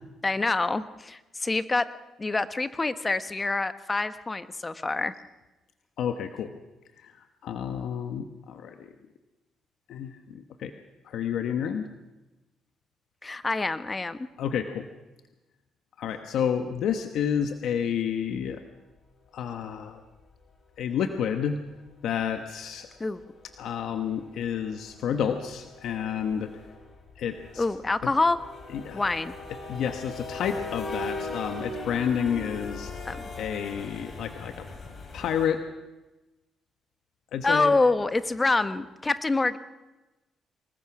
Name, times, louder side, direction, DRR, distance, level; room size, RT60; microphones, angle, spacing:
voice 1, 0.2-1.9 2.2-5.1 13.2-14.3 23.0-23.2 27.6-28.4 28.9-29.4 33.0-33.3 37.4-39.6, left 3 dB, 25° left, 12 dB, 1.1 m, -26 dB
voice 2, 6.0-6.5 7.0-7.1 7.4-8.9 9.9-10.7 11.0-11.9 14.4-14.9 16.0-18.6 19.3-20.0 20.8-21.6 22.0-22.9 23.6-26.5 27.2-27.6 28.0-28.1 28.7-29.1 29.7-32.9 33.4-34.7 35.1-35.6 37.3-37.7, left 8 dB, 75° left, 7 dB, 1.2 m, -30 dB
sound 1, 19.0-19.1 20.8-21.0 21.3-21.4 21.7-21.9 22.2-22.3 22.6-35.5, left 3 dB, 45° left, 4.8 m, -40 dB
25.5 x 20.5 x 6.0 m, 1.1 s
cardioid pair, 90°, 0 cm